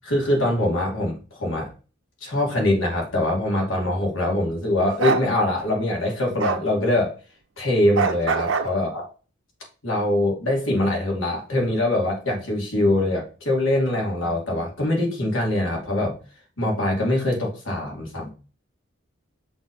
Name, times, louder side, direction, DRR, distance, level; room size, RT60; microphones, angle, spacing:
voice 1, 0.0-1.7 2.2-7.1 7.6-9.1 9.8-16.2 16.6-18.3, left 1 dB, 90° left, -1 dB, 2.9 m, -23 dB
Bark, 5.0-5.3 6.4-6.6 8.0-8.7, right 4 dB, 85° right, 0.8 m, -23 dB
6.1 x 3.7 x 5.1 m, 0.35 s
head